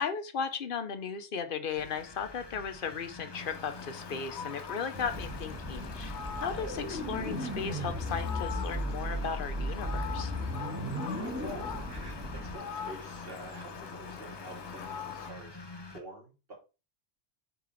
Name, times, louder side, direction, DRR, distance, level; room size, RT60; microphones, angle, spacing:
voice 1, 0.0-6.2 6.4-10.3, left 6 dB, 55° left, 9 dB, 1.0 m, -36 dB
sound 1, 1.7-16.0, left 2 dB, 25° left, 0.9 m, -47 dB
Fowl, 3.3-15.3, left 8 dB, 90° left, 1.0 m, -43 dB
sound 2, 4.9-12.5, equal, 15° right, 1.7 m, -36 dB
voice 2, 10.9-16.5, right 1 dB, 55° right, -2 dB, 3.3 m, -48 dB
6.9 x 4.7 x 4.1 m, 0.30 s
omnidirectional pair, 1.1 m